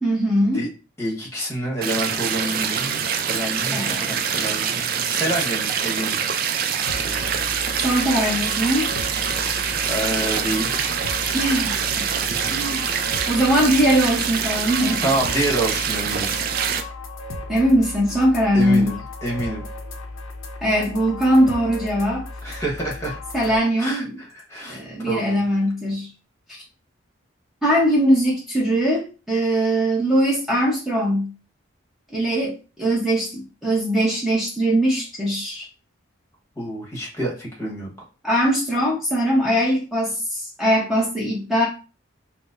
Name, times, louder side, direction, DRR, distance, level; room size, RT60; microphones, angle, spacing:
voice 1, 0.0-0.6 3.7-4.2 7.8-8.9 11.3-12.1 12.5-12.9 13.2-15.1 17.5-18.9 20.6-22.2 23.3-24.1 24.7-26.1 27.6-31.3 32.1-35.6 38.2-41.7, equal, ahead, -5 dB, 0.7 m, -21 dB
voice 2, 1.0-6.2 9.9-11.0 15.0-16.3 18.5-19.7 22.4-23.2 23.8-25.4 36.6-37.9, right 1 dB, 15° left, -2 dB, 1.1 m, -28 dB
sound 1, 1.8-16.8, right 7 dB, 45° right, 0.3 m, -25 dB
sound 2, 6.9-23.6, left 2 dB, 80° left, 0.6 m, -35 dB
4.5 x 2.0 x 2.4 m, 0.33 s
head